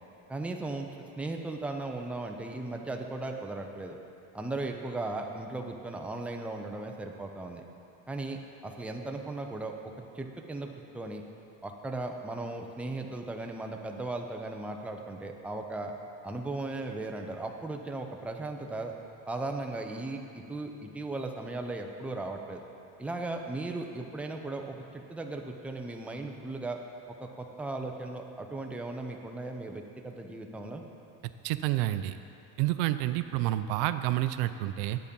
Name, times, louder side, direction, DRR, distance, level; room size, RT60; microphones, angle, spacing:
voice 1, 0.3-4.0 4.3-7.6 8.1-9.7 10.1-11.2 11.6-15.9 16.2-18.9 19.3-22.6 23.0-26.8 27.2-30.8, right 2 dB, 5° right, 2 dB, 0.6 m, -37 dB
voice 2, 31.4-32.2 32.6-35.0, right 15 dB, 70° right, 11 dB, 0.5 m, -29 dB
10.0 x 8.4 x 5.3 m, 2.6 s
supercardioid pair, 125°, 40 cm